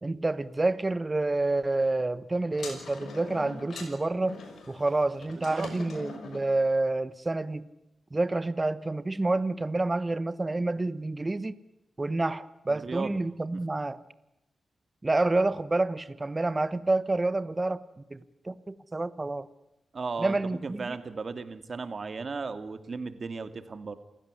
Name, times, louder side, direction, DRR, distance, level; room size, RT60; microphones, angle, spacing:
voice 1, 0.0-4.4 4.7-7.7 8.1-11.5 12.0-14.0 15.0-17.8 18.1-18.2 18.4-19.5 20.2-20.9, right 2 dB, 25° right, 15 dB, 1.3 m, -28 dB
sound 1, 2.5-6.5, left 3 dB, 85° left, 6.0 m, -43 dB
voice 2, 5.4-5.7 12.7-13.2 19.9-24.0, right 4 dB, 50° right, 10 dB, 2.6 m, -36 dB
28.5 x 16.5 x 9.9 m, 0.94 s
cardioid pair, 70°, 0 cm